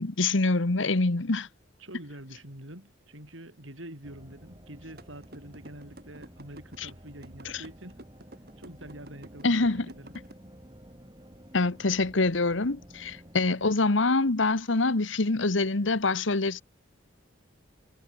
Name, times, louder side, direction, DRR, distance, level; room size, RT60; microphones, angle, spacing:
voice 1, 0.0-1.5 6.8-6.9 7.4-7.6 9.4-9.9 11.5-16.6, left 3 dB, 70° left, 1.3 m, -25 dB
voice 2, 1.8-8.0 8.6-10.1, right 1 dB, 75° right, 7.8 m, -46 dB
sound 1, 4.0-13.7, equal, 20° right, 4.2 m, -51 dB
sound 2, 5.0-10.3, right 1 dB, 50° right, 4.3 m, -48 dB
head